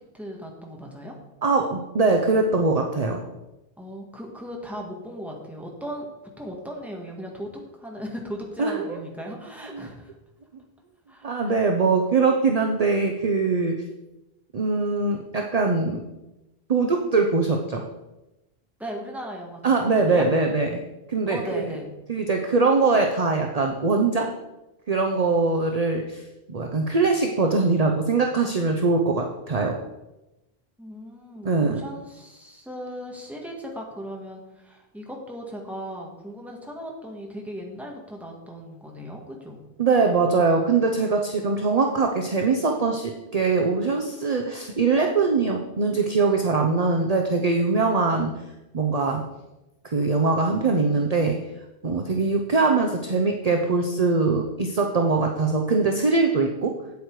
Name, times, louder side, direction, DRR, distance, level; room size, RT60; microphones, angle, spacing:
voice 1, 0.1-1.2 3.8-6.1 6.4-10.1 11.1-11.7 18.8-19.6 20.0-20.3 21.3-21.9 30.8-39.6, equal, ahead, -1 dB, 1.8 m, -37 dB
voice 2, 1.4-3.2 8.6-9.0 9.7-9.9 11.2-13.8 14.5-16.0 16.7-17.8 19.6-20.8 21.1-21.6 22.1-24.3 24.9-26.2 26.5-29.8 31.4-31.8 39.8-48.3 48.7-49.2 49.8-51.4 51.8-56.8, right 4 dB, 40° right, 3 dB, 0.8 m, -22 dB
8.3 x 8.2 x 4.7 m, 0.98 s
omnidirectional pair, 1.1 m